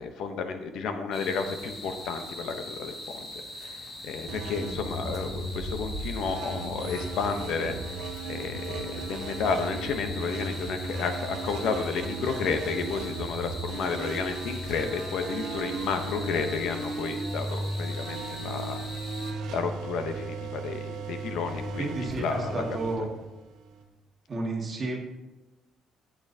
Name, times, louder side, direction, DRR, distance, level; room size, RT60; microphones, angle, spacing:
voice 1, 0.0-3.3 3.6-18.8 19.2-22.6 23.0-23.1, left 5 dB, 65° left, 7 dB, 0.8 m, -32 dB
sound 1, 1.1-19.3, left 1 dB, 30° left, 1.6 m, -42 dB
sound 2, 4.3-23.8, right 2 dB, 80° right, 1.3 m, -36 dB
voice 2, 21.8-23.1 24.3-25.0, right 2 dB, 25° right, -1 dB, 1.7 m, -32 dB
12.0 x 8.7 x 2.7 m, 1.0 s
cardioid pair, 175°, 0 cm